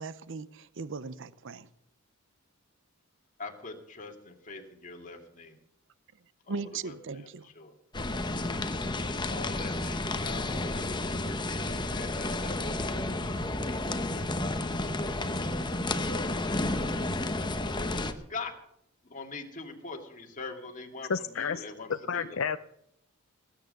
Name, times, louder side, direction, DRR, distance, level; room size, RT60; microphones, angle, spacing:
voice 1, 0.0-1.7 6.5-7.5, right 4 dB, 60° right, 0.7 m, -38 dB
voice 2, 3.4-5.5 6.5-6.6 6.8-7.3 7.6-7.7 9.3-14.2 14.5-15.2 18.3-18.5 19.1-22.4, left 3 dB, 35° left, 2.2 m, -43 dB
sound 1, 7.9-18.1, left 2 dB, 20° left, 1.0 m, -31 dB
voice 3, 21.1-21.6 22.1-22.6, left 6 dB, 65° left, 0.5 m, -30 dB
19.5 x 9.4 x 6.7 m
head